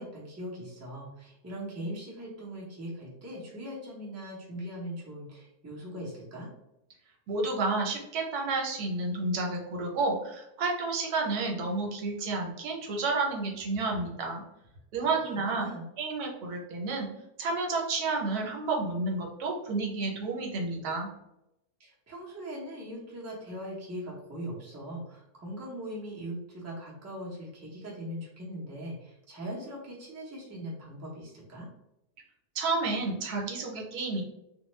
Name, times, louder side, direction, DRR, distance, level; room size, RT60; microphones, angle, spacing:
voice 1, 0.0-6.5 15.0-15.1 15.5-15.8 21.8-31.7, equal, 20° right, -4 dB, 0.4 m, -40 dB
voice 2, 7.3-14.4 14.9-15.7 16.0-17.1 17.4-21.1 32.5-34.2, right 3 dB, 80° right, 0 dB, 1.2 m, -30 dB
2.4 x 2.2 x 3.0 m, 0.85 s
omnidirectional pair, 1.6 m